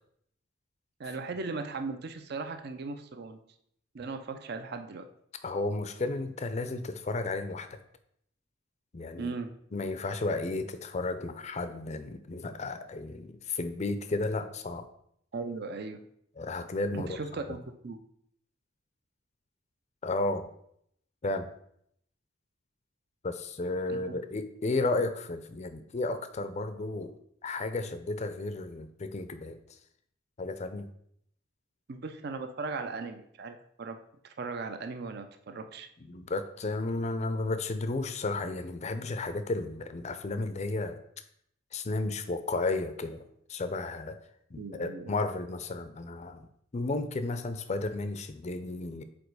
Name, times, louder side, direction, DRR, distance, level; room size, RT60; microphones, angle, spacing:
voice 1, 1.0-3.4 3.9-5.1 9.2-9.5 15.3-16.0 16.9-18.0 23.9-24.0 31.9-34.0 34.2-35.9 44.6-45.1, right 4 dB, 55° right, 8 dB, 0.5 m, -38 dB
voice 2, 5.4-7.8 8.9-9.3 9.7-14.9 16.4-17.2 20.0-20.5 21.2-21.5 23.2-27.1 27.4-29.6 30.4-30.9 36.0-41.0 41.7-43.2 43.5-44.2 44.5-49.0, left 2 dB, 35° left, 10 dB, 0.5 m, -33 dB
5.1 x 4.1 x 4.7 m, 0.71 s
head